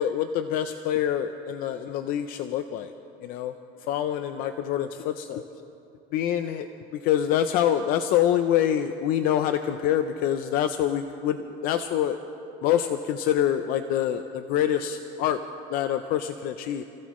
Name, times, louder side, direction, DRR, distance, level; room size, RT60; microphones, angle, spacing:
voice 1, 0.0-2.9 3.2-3.5 3.8-5.4 6.1-12.2 12.6-15.4 15.7-16.8, left 10 dB, 55° left, 8 dB, 0.6 m, -26 dB
29.0 x 15.5 x 3.2 m, 2.8 s
cardioid pair, 150°, 18 cm